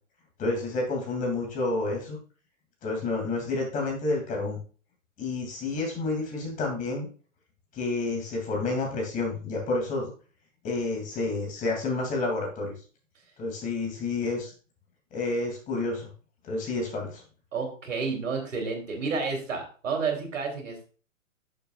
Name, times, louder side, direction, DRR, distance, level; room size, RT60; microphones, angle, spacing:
voice 1, 0.4-2.2 2.8-4.6 5.2-7.1 7.7-10.1 10.6-12.7 13.4-14.5 15.1-16.1 16.4-17.2, left 3 dB, 20° left, 0 dB, 2.7 m, -29 dB
voice 2, 17.5-20.9, right 4 dB, 70° right, 3 dB, 3.3 m, -30 dB
12.0 x 6.9 x 2.4 m, 0.37 s
hypercardioid pair, 130°, 40 cm